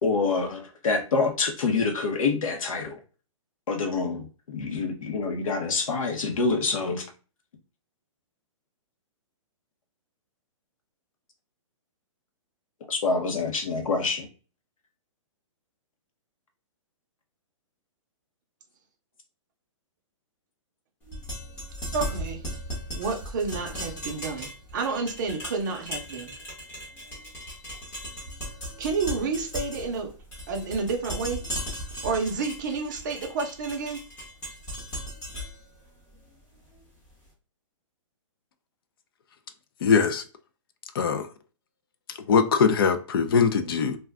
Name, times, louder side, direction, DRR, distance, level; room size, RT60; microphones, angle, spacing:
voice 1, 0.0-3.0 3.7-7.1 12.9-14.3, left 4 dB, 85° left, 0.8 m, -26 dB
sound 1, 21.0-37.1, equal, 15° left, 0.8 m, -37 dB
voice 2, 21.9-22.4 22.9-26.3 28.8-30.1 30.5-31.4 32.0-34.0, right 4 dB, 35° right, 0.6 m, -30 dB
voice 3, 39.8-40.2 41.0-41.3 42.3-44.0, left 6 dB, 45° left, 0.4 m, -21 dB
2.5 x 2.2 x 3.4 m
hypercardioid pair, 170°, 17 cm